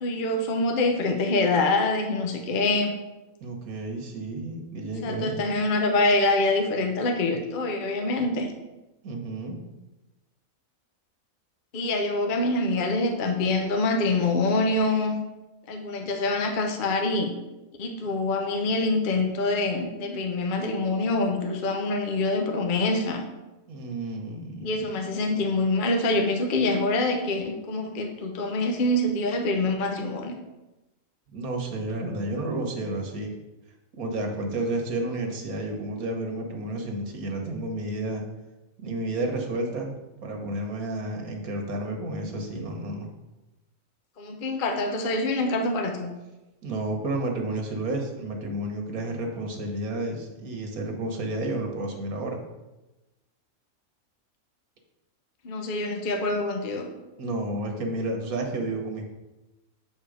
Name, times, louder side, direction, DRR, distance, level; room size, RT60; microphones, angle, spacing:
voice 1, 0.0-2.9 5.0-8.5 11.7-15.2 15.7-17.3 17.8-23.2 24.6-30.3 44.2-46.1 55.4-56.9, left 2 dB, 45° left, 4 dB, 0.8 m, -25 dB
voice 2, 3.4-5.4 9.0-9.6 23.7-25.0 31.3-33.3 34.0-38.2 38.8-40.0 40.2-43.1 46.6-52.4 57.2-59.0, right 2 dB, 90° right, 3 dB, 1.6 m, -31 dB
7.1 x 4.4 x 5.0 m, 1.0 s
omnidirectional pair, 1.5 m